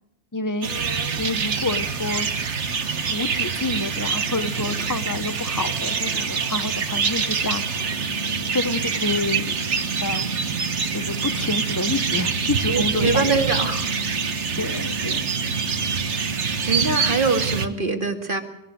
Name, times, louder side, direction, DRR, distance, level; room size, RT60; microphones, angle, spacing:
voice 1, 0.3-2.3 3.0-8.0 8.5-9.6 10.0-10.3 10.9-13.2 14.5-15.2, left 2 dB, 15° left, 12 dB, 1.2 m, -28 dB
sound 1, 0.6-17.7, right 5 dB, 80° right, 1.7 m, -25 dB
sound 2, 7.7-17.7, right 1 dB, 35° left, 2.1 m, -36 dB
voice 2, 12.7-13.9 16.7-18.4, right 4 dB, 50° right, 6 dB, 2.5 m, -23 dB
23.0 x 17.0 x 8.1 m, 0.88 s
omnidirectional pair, 1.2 m